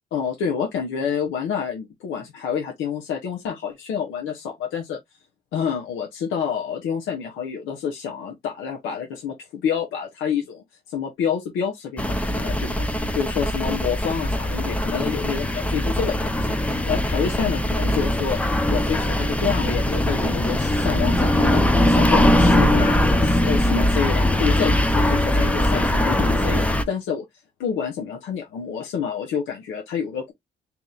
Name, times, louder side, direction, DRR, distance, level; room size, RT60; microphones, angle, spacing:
voice 1, 0.1-5.0 5.5-12.9 13.1-18.4 18.7-21.6 21.9-27.2 27.6-30.3, left 7 dB, 85° left, 0.9 m, -28 dB
sound 1, 12.0-26.8, left 1 dB, 5° left, 0.4 m, -21 dB
2.9 x 2.6 x 3.8 m
cardioid pair, 90°, 20 cm